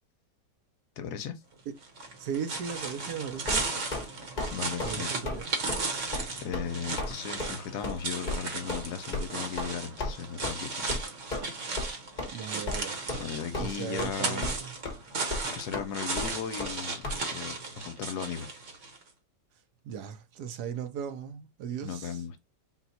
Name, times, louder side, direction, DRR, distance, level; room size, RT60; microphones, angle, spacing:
voice 1, 1.0-1.4 4.5-5.3 6.4-11.0 13.2-14.5 15.4-17.1 17.3-18.5 21.8-22.4, left 7 dB, 75° left, 1.1 m, -37 dB
sound 1, 1.8-19.0, right 3 dB, 50° right, 1.2 m, -36 dB
voice 2, 2.2-3.7 4.8-5.5 12.3-13.0 13.5-14.7 19.8-22.2, right 8 dB, 70° right, 1.1 m, -37 dB
sound 2, 3.5-4.1 4.4-4.5 4.8-5.0 5.2-5.4 5.7-5.8 6.1-6.3 6.5-6.7 7.0-7.1 7.4-7.5 7.8-8.0 8.3-8.4 8.7-8.8 9.1-9.2 9.6-9.7 10.0-10.1 10.4-10.5 10.9-11.0 11.3-11.5 11.8-11.9 12.2-12.3 12.7-12.8 13.1-13.2 13.5-14.1 14.4-14.6 14.8-14.9 15.3-15.4 15.7-15.8 16.2-16.3 16.6-16.7 17.0-17.2, left 2 dB, 35° left, 0.9 m, -33 dB
4.1 x 2.3 x 4.0 m
omnidirectional pair, 1.9 m